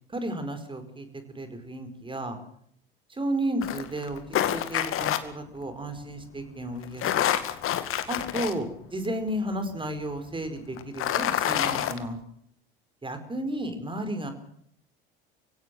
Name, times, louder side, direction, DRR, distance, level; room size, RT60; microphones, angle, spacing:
voice 1, 0.1-2.4 3.1-7.4 8.1-12.2 13.0-14.3, right 1 dB, 15° right, 9 dB, 5.0 m, -33 dB
sound 1, 3.6-5.2 6.8-8.5 9.0-9.1 10.8-12.0, left 11 dB, 45° left, 2.1 m, -27 dB
24.0 x 17.0 x 7.7 m, 0.67 s
figure-of-eight pair, 65°, 30 cm